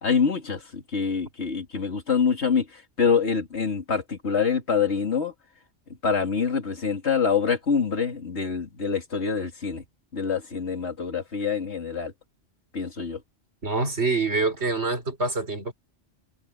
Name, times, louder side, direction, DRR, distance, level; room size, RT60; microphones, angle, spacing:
voice 1, 0.0-2.7 3.0-5.3 6.0-9.8 10.1-12.1 12.7-13.2, left 6 dB, 70° left, 2.8 m, -25 dB
voice 2, 13.6-15.7, right 3 dB, 70° right, 4.5 m, -25 dB
omnidirectional pair, 1.2 m